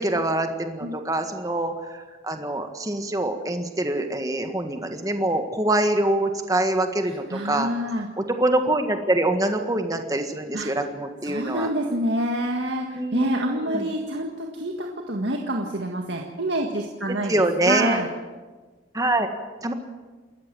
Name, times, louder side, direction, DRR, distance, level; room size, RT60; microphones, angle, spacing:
voice 1, 0.0-7.7 8.2-11.7 12.9-13.9 17.1-18.0 18.9-19.3 19.6-19.7, right 1 dB, 20° right, 6 dB, 1.6 m, -25 dB
voice 2, 7.3-8.1 10.5-10.7 11.2-18.1, right 1 dB, 70° right, 1 dB, 1.9 m, -27 dB
28.5 x 14.0 x 7.7 m, 1.3 s
head